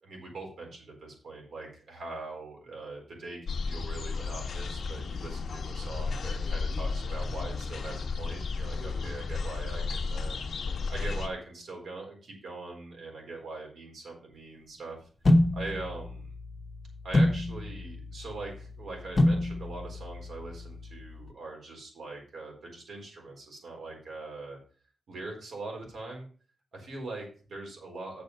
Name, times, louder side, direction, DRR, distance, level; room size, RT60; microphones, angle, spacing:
voice 1, 0.0-10.4 10.9-15.0 15.5-16.3 17.0-24.6 25.1-26.3 26.7-27.2 27.5-28.2, right 3 dB, 70° right, 0 dB, 4.1 m, -42 dB
sound 1, 3.5-11.3, left 4 dB, 55° left, 1.1 m, -33 dB
sound 2, 15.2-21.3, left 1 dB, 25° left, 1.0 m, -28 dB
7.8 x 6.6 x 5.4 m, 0.41 s
wide cardioid pair, 155°, 0 cm